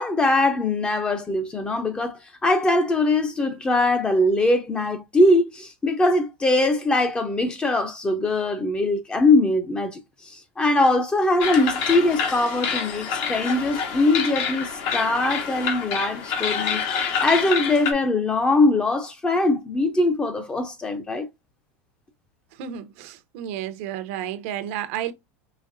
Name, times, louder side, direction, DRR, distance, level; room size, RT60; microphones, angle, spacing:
voice 1, 0.0-16.8 17.2-21.3, left 2 dB, 15° left, 0.6 m, -22 dB
sound 1, 11.4-17.9, left 6 dB, 55° left, 1.1 m, -27 dB
voice 2, 22.5-25.1, right 10 dB, 65° right, 0.7 m, -32 dB
5.1 x 3.1 x 2.6 m
supercardioid pair, 145°, 7 cm